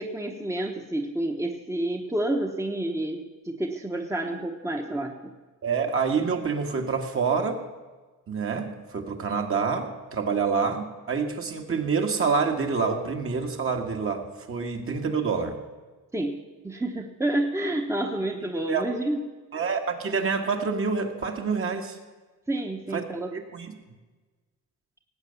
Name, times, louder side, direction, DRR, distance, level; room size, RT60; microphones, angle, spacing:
voice 1, 0.0-5.3 16.1-19.2 22.5-23.3, right 1 dB, 10° right, 3 dB, 1.0 m, -29 dB
voice 2, 5.6-7.6 8.3-15.6 18.7-18.8 19.5-22.0 22.9-23.0 23.3-23.8, right 5 dB, 45° right, 3 dB, 1.8 m, -27 dB
17.5 x 8.5 x 6.9 m, 1.3 s
cardioid pair, 125°, 31 cm